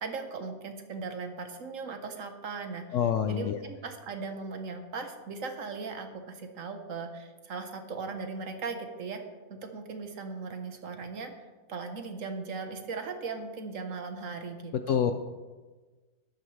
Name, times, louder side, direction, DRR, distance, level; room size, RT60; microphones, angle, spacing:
voice 1, 0.0-2.8 3.3-9.2 9.5-15.1, right 4 dB, 55° right, 6 dB, 1.4 m, -38 dB
voice 2, 2.9-3.6 14.9-15.1, left 8 dB, 70° left, 8 dB, 0.7 m, -26 dB
13.0 x 11.5 x 3.3 m, 1.3 s
omnidirectional pair, 1.7 m